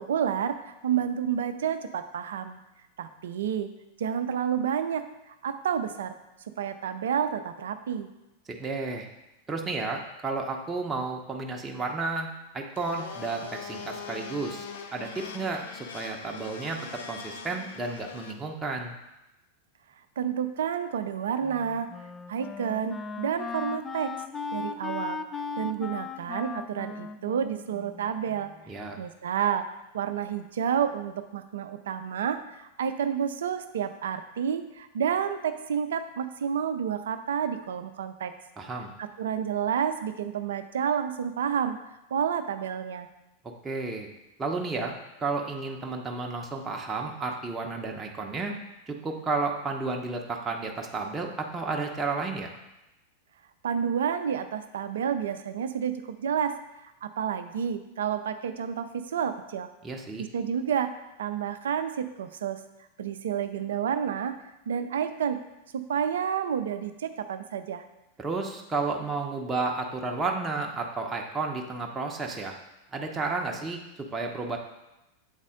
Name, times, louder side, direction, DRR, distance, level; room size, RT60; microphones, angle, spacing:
voice 1, 0.0-2.6 3.0-3.7 4.0-6.2 6.6-8.1 20.2-21.9 22.3-24.1 24.5-25.2 25.6-29.7 29.9-38.3 39.0-41.8 42.1-43.1 53.6-56.5 57.0-59.7 60.2-60.9 61.2-62.6 63.0-64.3 64.7-65.4 65.7-67.8, right 8 dB, 60° right, 9 dB, 0.4 m, -30 dB
voice 2, 8.5-9.1 9.5-12.3 12.5-14.7 14.9-18.9 28.7-29.0 38.6-38.9 43.4-44.1 44.4-48.5 48.9-52.5 59.8-60.2 68.2-72.6 72.9-74.6, right 3 dB, 15° right, 1 dB, 0.7 m, -32 dB
Domestic sounds home sounds, 12.7-18.3, left 5 dB, 60° left, 0.6 m, -41 dB
Wind instrument woodwind instrument, 21.4-28.6, left 4 dB, 15° left, 0.3 m, -37 dB
8.0 x 4.1 x 3.7 m, 0.95 s
figure-of-eight pair, 90°, 0 cm